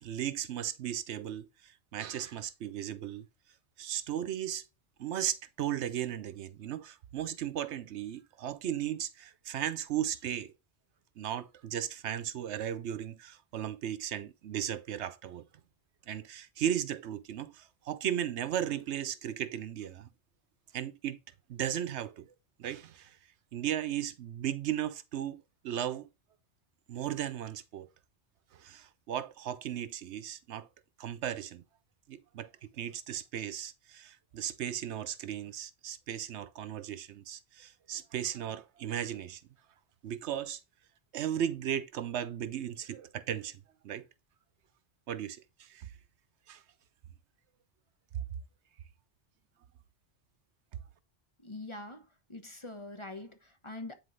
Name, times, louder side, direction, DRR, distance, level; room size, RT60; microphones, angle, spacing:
voice 1, 0.0-3.3 3.8-4.6 5.0-10.5 11.2-15.4 16.1-20.1 20.7-21.2 21.5-22.3 22.6-23.2 23.5-26.1 26.9-27.9 28.5-30.7 31.0-31.6 32.1-39.4 40.0-40.6 41.1-44.1 45.1-45.9 46.5-46.6, right 10 dB, 80° right, 1.0 m, -36 dB
voice 2, 51.4-53.9, left 2 dB, 30° left, 1.0 m, -44 dB
9.8 x 4.5 x 3.1 m
omnidirectional pair, 1.1 m